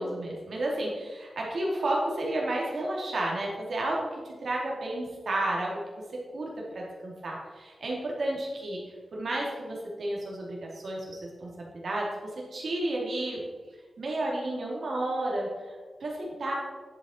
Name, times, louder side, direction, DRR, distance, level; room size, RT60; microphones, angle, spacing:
voice 1, 0.0-6.0 6.3-8.8 9.1-13.4 14.0-16.5, right 1 dB, 70° right, -3 dB, 2.4 m, -32 dB
10.5 x 5.4 x 4.3 m, 1.5 s
wide cardioid pair, 120°, 0 cm